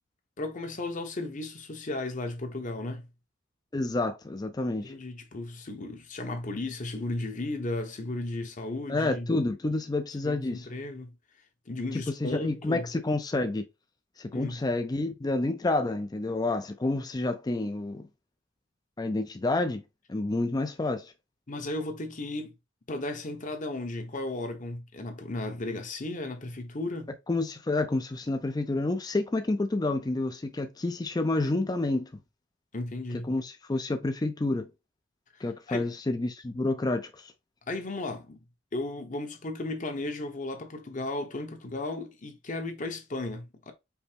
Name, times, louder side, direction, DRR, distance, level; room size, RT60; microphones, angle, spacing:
voice 1, 0.4-3.1 4.8-9.3 10.2-11.1 11.7-12.9 14.3-14.6 21.5-22.5 22.9-27.1 32.7-33.3 35.4-35.9 37.7-38.4 38.7-43.7, left 2 dB, 40° left, 0.9 m, -35 dB
voice 2, 3.7-4.9 8.9-10.7 12.2-13.6 14.2-18.0 19.0-19.8 20.1-21.1 27.3-32.1 33.3-34.7 35.4-37.3, left 2 dB, 20° left, 0.4 m, -29 dB
5.4 x 2.1 x 4.4 m
head